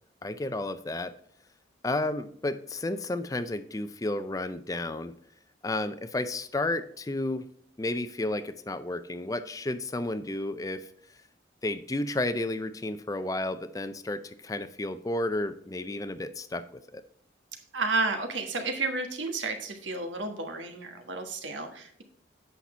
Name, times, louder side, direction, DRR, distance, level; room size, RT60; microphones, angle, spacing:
voice 1, 0.2-1.1 1.8-5.1 5.6-7.5 7.8-10.9 11.6-16.6 16.9-17.0, left 2 dB, 20° left, 12 dB, 0.4 m, -32 dB
voice 2, 17.7-22.0, right 3 dB, 85° right, 5 dB, 1.5 m, -31 dB
8.3 x 5.9 x 4.3 m, 0.64 s
head